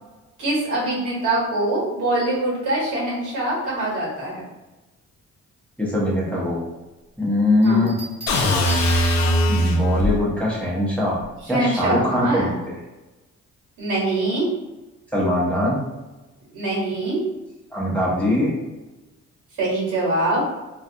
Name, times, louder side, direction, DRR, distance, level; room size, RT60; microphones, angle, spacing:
voice 1, 0.4-4.4 7.6-7.8 11.5-12.5 13.8-14.5 16.5-17.2 19.6-20.4, right 2 dB, 80° right, -5 dB, 1.3 m, -23 dB
voice 2, 5.8-6.6 7.2-7.9 9.5-11.2 11.5-12.6 15.1-15.8 17.7-18.5, left 1 dB, 5° left, -6 dB, 0.8 m, -21 dB
sound 1, 7.6-9.6 11.2-11.5, right 3 dB, 20° right, 1.2 m, -39 dB
sound 2, 8.3-10.2, equal, 65° left, 0.5 m, -19 dB
2.4 x 2.3 x 2.6 m, 1.1 s
cardioid pair, 90°, 30 cm